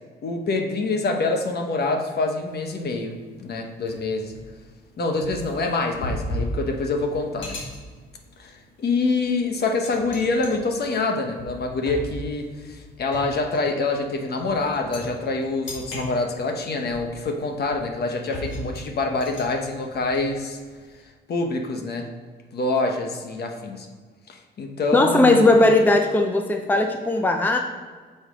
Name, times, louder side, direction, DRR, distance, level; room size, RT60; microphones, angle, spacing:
voice 1, 0.2-4.3 5.0-7.6 8.4-20.6 21.3-22.1 22.5-23.9 24.3-25.6, left 3 dB, 55° left, 3 dB, 1.1 m, -26 dB
sound 1, 2.3-2.6 3.0-3.1 3.8-21.0, equal, 70° left, 1.7 m, -37 dB
voice 2, 24.9-27.6, left 2 dB, 10° left, 4 dB, 0.6 m, -18 dB
6.6 x 4.4 x 5.2 m, 1.5 s
cardioid pair, 90°, 20 cm